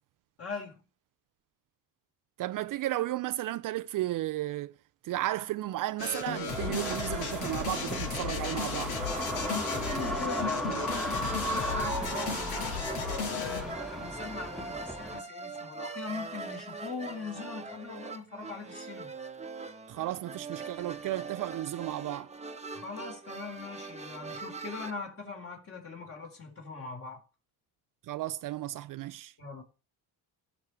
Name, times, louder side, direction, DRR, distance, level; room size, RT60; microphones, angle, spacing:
voice 1, 0.4-0.8 9.5-19.1 22.7-27.2 29.4-29.6, left 4 dB, 35° left, 4.3 m, -41 dB
voice 2, 2.4-4.7 5.0-9.0 19.9-22.3 28.1-29.3, right 14 dB, 55° right, 0.6 m, -34 dB
sound 1, 6.0-13.8, left 5 dB, 80° left, 5.9 m, -35 dB
sound 2, 6.5-15.2, equal, ahead, 1.7 m, -36 dB
sound 3, 6.5-24.9, right 3 dB, 15° right, 1.2 m, -42 dB
15.0 x 6.6 x 4.7 m
cardioid pair, 100°, 38 cm